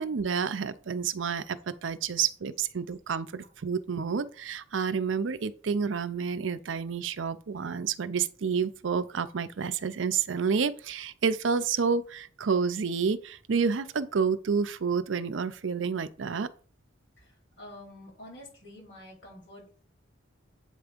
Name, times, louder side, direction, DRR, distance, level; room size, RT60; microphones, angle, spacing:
voice 1, 0.0-16.5, right 6 dB, 80° right, 0.5 m, -29 dB
voice 2, 17.2-19.8, left 1 dB, 70° left, 3.9 m, -48 dB
8.2 x 3.5 x 5.1 m
head